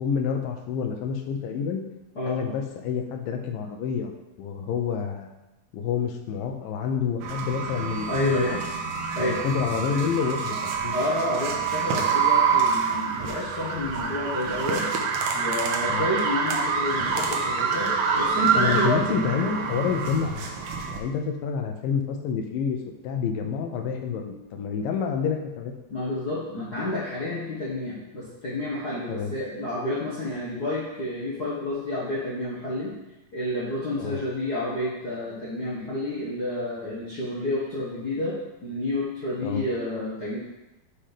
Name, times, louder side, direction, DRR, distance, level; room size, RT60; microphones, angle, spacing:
voice 1, 0.0-1.9 2.3-4.1 4.4-5.3 5.7-8.6 9.2-10.9 15.9-16.1 18.6-20.5 20.9-22.8 23.0-25.7 29.1-29.3 34.0-34.2 39.4-39.6, left 6 dB, 85° left, 4 dB, 2.5 m, -28 dB
sound 1, 7.2-21.0, right 5 dB, 70° right, 2.1 m, -26 dB
voice 2, 8.1-8.5 9.1-9.4 10.9-14.9 15.3-19.3 25.9-33.0 33.3-38.4 38.6-40.4, left 1 dB, 60° left, -8 dB, 1.0 m, -30 dB
7.4 x 4.4 x 5.0 m, 0.96 s
omnidirectional pair, 3.9 m